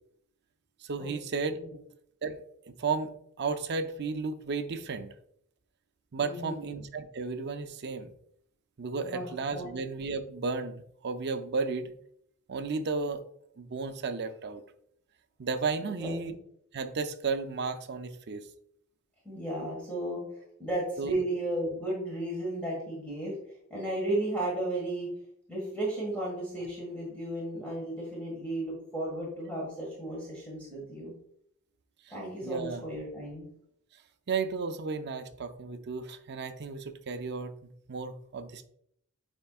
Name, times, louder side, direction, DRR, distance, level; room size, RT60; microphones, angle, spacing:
voice 1, 0.8-1.6 2.2-2.4 2.7-3.1 3.4-5.1 6.1-8.1 8.8-11.9 12.5-13.2 13.6-14.6 15.4-16.3 16.7-18.5 21.0-21.2 32.1-32.2 32.4-32.8 34.3-38.7, right 4 dB, 50° right, 9 dB, 0.5 m, -33 dB
voice 2, 6.2-6.7 9.0-9.7 15.9-16.2 19.3-23.4 23.7-25.1 25.5-31.1 32.1-33.4, right 1 dB, 5° left, -5 dB, 1.7 m, -34 dB
9.1 x 4.4 x 2.4 m, 0.70 s
head